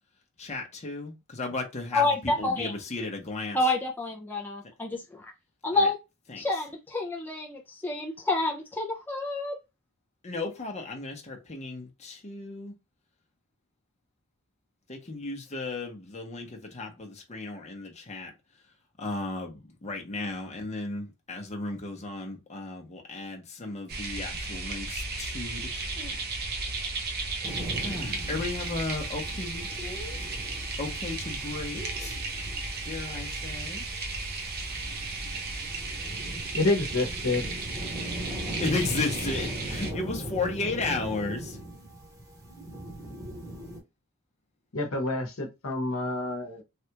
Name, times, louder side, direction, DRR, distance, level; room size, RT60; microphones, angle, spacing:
voice 1, 0.4-3.6 5.7-5.9 6.3-6.4 10.2-12.7 14.9-18.3 19.0-26.2 27.8-30.3 30.8-32.2 32.8-33.8 38.6-41.6, left 3 dB, 30° left, 0.8 m, -34 dB
voice 2, 1.9-2.7 3.5-5.2 5.6-6.0 6.4-9.6, left 2 dB, 10° left, 0.5 m, -28 dB
sound 1, 23.9-39.9, right 3 dB, 45° right, 0.7 m, -34 dB
sound 2, 27.4-43.8, right 1 dB, 15° right, 1.1 m, -40 dB
voice 3, 36.5-37.5 44.7-46.6, left 2 dB, 65° left, 1.0 m, -28 dB
3.3 x 2.4 x 2.9 m
head